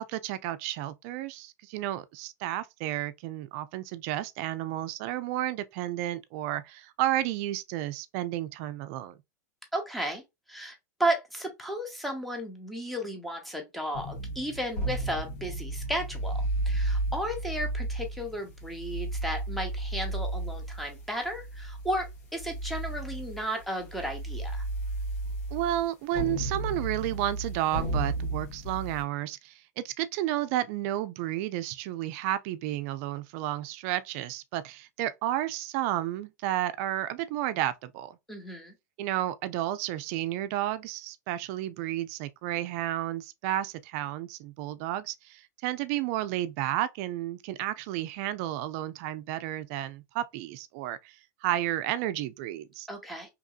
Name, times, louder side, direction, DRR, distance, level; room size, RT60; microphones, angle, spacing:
voice 1, 0.0-9.1 25.5-38.2 39.0-51.2 51.4-52.9, right 13 dB, 50° right, 0.3 m, -32 dB
voice 2, 9.7-10.2 10.5-24.6 38.3-38.7 52.9-53.3, right 1 dB, ahead, 0.8 m, -34 dB
sound 1, 13.9-29.0, right 2 dB, 65° left, 1.4 m, -33 dB
2.9 x 2.6 x 2.4 m
supercardioid pair, 130°, 10 cm